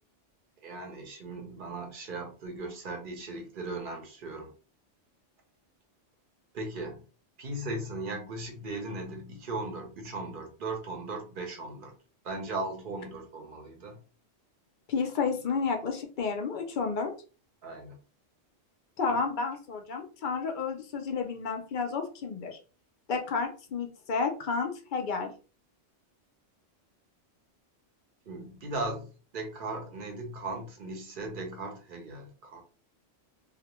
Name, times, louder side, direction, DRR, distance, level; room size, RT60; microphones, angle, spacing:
voice 1, 0.6-4.5 6.5-7.0 7.4-11.9 12.2-14.0 17.6-18.0 28.3-29.1 29.3-32.6, right 2 dB, 50° right, 3 dB, 0.7 m, -37 dB
voice 2, 14.9-17.1 19.0-22.6 23.1-25.3, left 5 dB, 60° left, 4 dB, 0.5 m, -31 dB
2.4 x 2.1 x 2.9 m, 0.36 s
omnidirectional pair, 1.3 m